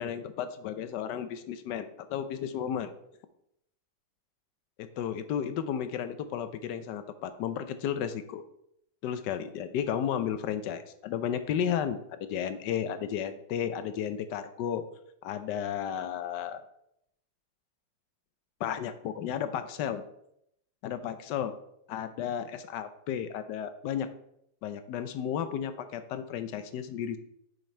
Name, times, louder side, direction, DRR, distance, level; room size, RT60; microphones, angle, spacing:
voice 1, 0.0-2.9 4.8-8.4 9.0-14.8 15.2-16.6 18.6-20.0 20.8-21.6 21.9-24.1 24.6-27.2, left 9 dB, 75° left, 11 dB, 1.2 m, -33 dB
6.4 x 5.0 x 4.3 m, 0.76 s
omnidirectional pair, 2.0 m